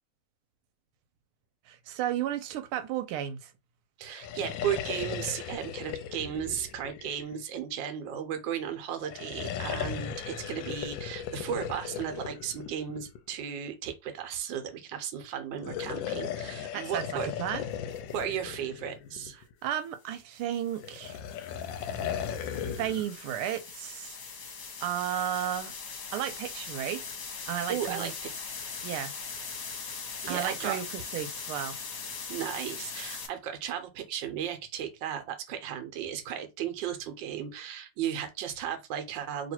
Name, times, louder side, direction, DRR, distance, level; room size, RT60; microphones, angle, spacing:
voice 1, 1.7-3.5 16.7-17.6 19.6-21.2 22.8-24.2 24.8-25.7 26.1-27.1 27.5-28.1 28.8-29.1 30.2-31.8, right 11 dB, 90° right, 1.5 m, -33 dB
voice 2, 4.0-17.3 18.1-19.4 27.7-28.3 30.2-30.8 32.3-39.5, right 9 dB, 65° right, 1.4 m, -35 dB
sound 1, 4.1-7.7 9.0-13.3 15.5-19.5 20.8-23.1, left 8 dB, 75° left, 1.2 m, -37 dB
sound 2, 17.9-18.2 20.4-33.3, left 5 dB, 55° left, 1.1 m, -41 dB
3.1 x 3.0 x 4.3 m
omnidirectional pair, 2.3 m